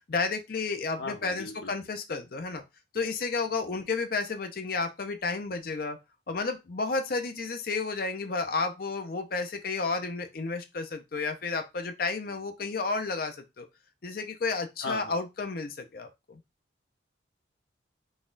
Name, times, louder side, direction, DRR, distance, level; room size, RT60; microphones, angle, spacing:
voice 1, 0.1-2.6 2.9-6.0 6.3-13.7 14.0-16.4, left 4 dB, 50° left, 6 dB, 0.5 m, -32 dB
voice 2, 1.0-1.7 14.8-15.1, left 3 dB, 80° left, 3 dB, 1.0 m, -37 dB
4.0 x 2.3 x 3.8 m, 0.23 s
head